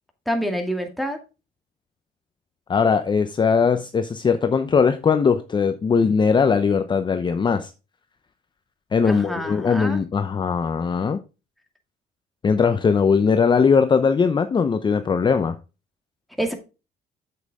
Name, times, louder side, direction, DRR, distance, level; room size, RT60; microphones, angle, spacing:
voice 1, 0.3-1.2 9.0-10.0 16.4-16.5, equal, ahead, 2.2 m, -27 dB
voice 2, 2.7-7.7 8.9-11.2 12.4-15.5, left 5 dB, 25° left, 0.7 m, -20 dB
7.9 x 7.5 x 3.5 m
cardioid pair, 110°, 17 cm